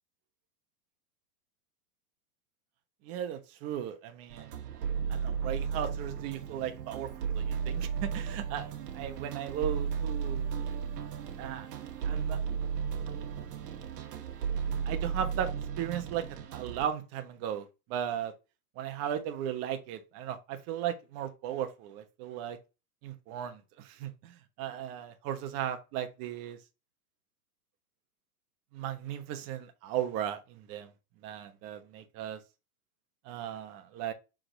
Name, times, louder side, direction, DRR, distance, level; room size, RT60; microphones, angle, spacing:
voice 1, 3.0-4.8 5.1-7.1 7.3-8.7 8.9-10.5 11.4-11.7 12.0-12.4 14.8-15.5 15.8-16.2 16.5-18.3 18.8-22.6 23.0-26.6 28.7-30.9 31.2-32.4 33.2-34.1, right 10 dB, 30° right, 1.0 m, -36 dB
sound 1, 4.3-16.9, right 7 dB, 80° right, 1.6 m, -34 dB
6.5 x 3.8 x 3.9 m
supercardioid pair, 155°, 47 cm